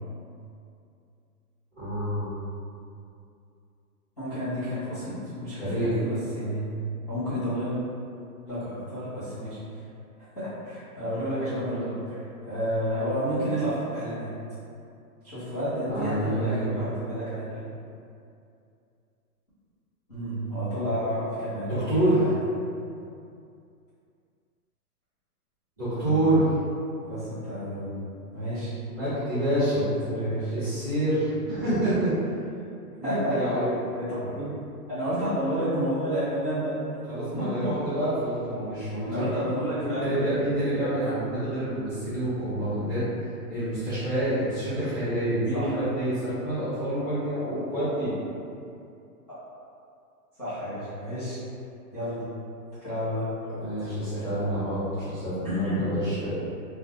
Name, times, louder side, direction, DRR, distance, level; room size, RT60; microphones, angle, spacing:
voice 1, 1.8-2.3 5.6-5.9 15.9-16.7 21.7-22.2 25.8-26.5 28.9-29.8 30.5-32.2 33.0-33.7 37.1-39.4 39.8-43.0 43.5-48.1 53.6-56.3, right 1 dB, 15° right, -19 dB, 0.6 m, -27 dB
voice 2, 4.2-6.6 7.1-7.8 8.5-9.6 10.4-11.9 12.4-14.3 15.2-17.6 20.1-22.3 26.0-26.3 27.0-28.0 28.3-28.7 29.7-30.5 33.0-33.7 33.9-34.5 34.9-36.7 37.3-37.7 38.8-40.1 45.5-45.8 49.3-49.4 50.4-51.4 51.9-52.3 52.8-54.5 55.4-55.8, equal, 25° left, -18 dB, 0.5 m, -31 dB
2.3 x 2.0 x 2.8 m, 2.5 s
hypercardioid pair, 165°, 48 cm